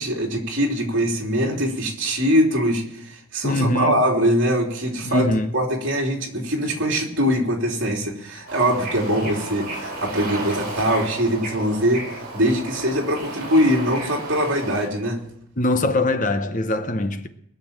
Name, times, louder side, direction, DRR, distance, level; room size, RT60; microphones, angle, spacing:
voice 1, 0.0-5.3 5.5-15.2, equal, 55° right, 3.4 m, -22 dB
voice 2, 3.4-4.0 5.0-5.5 15.6-17.3, left 1 dB, 35° left, 0.8 m, -22 dB
Bird / Ocean, 8.5-14.9, right 2 dB, 40° right, 5.5 m, -33 dB
21.0 x 7.0 x 8.8 m
head